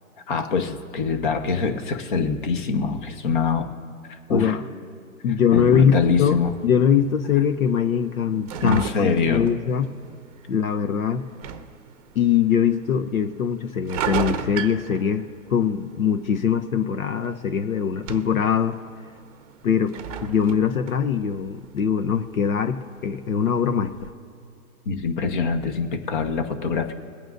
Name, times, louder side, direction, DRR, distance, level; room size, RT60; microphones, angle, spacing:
voice 1, 0.3-3.7 4.3-4.6 5.5-6.5 8.6-9.5 24.8-26.9, left 5 dB, 35° left, 7 dB, 1.2 m, -24 dB
voice 2, 4.3-4.6 5.2-6.4 6.6-9.9 10.5-11.2 12.1-18.8 19.6-19.9 20.2-24.1, left 7 dB, 65° left, 9 dB, 0.9 m, -22 dB
sound 1, 5.5-24.1, right 7 dB, 25° right, 0.9 m, -38 dB
22.5 x 9.0 x 2.6 m, 2.4 s
hypercardioid pair, 150°, 44 cm